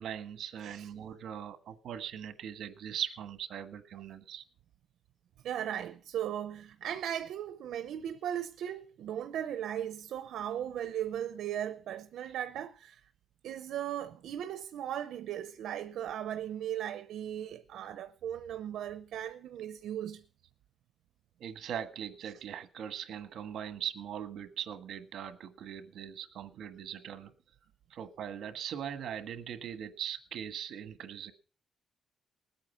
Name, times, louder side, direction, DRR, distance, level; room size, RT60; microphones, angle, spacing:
voice 1, 0.0-4.4 21.4-27.3 27.9-31.3, right 9 dB, 65° right, 1.5 m, -40 dB
voice 2, 5.4-13.0 13.4-20.2, right 10 dB, 80° right, 0.7 m, -37 dB
20.0 x 8.9 x 5.7 m
cardioid pair, 175°, 0 cm